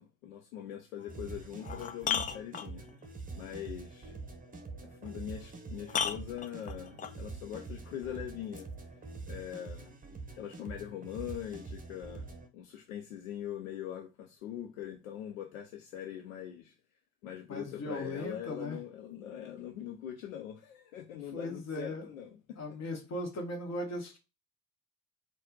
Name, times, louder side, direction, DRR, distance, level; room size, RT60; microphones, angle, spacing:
voice 1, 0.0-2.9 3.3-4.2 4.8-8.7 9.3-9.9 10.3-12.3 12.5-16.7 17.2-22.6, left 10 dB, 70° left, 0.6 m, -42 dB
sound 1, 1.0-1.1 1.6-3.1 5.1-5.2 5.9-7.2 8.5-8.6, left 7 dB, 20° left, 0.3 m, -35 dB
sound 2, 1.1-12.5, right 3 dB, 20° right, 0.9 m, -45 dB
voice 2, 17.5-18.8 21.3-22.1 22.6-24.2, left 1 dB, 35° left, 1.5 m, -38 dB
4.1 x 2.4 x 3.8 m
figure-of-eight pair, 50°, 43 cm